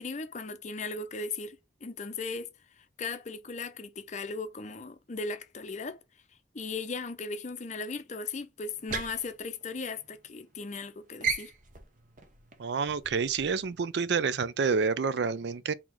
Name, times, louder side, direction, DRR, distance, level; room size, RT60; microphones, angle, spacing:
voice 1, 0.0-2.5 3.0-6.0 6.5-11.5, left 4 dB, 40° left, 0.5 m, -37 dB
sound 1, 8.7-10.3 10.6-10.9 11.2-13.7, right 5 dB, 45° right, 0.8 m, -37 dB
voice 2, 12.6-15.7, right 5 dB, 65° right, 0.4 m, -28 dB
4.1 x 2.8 x 4.4 m
head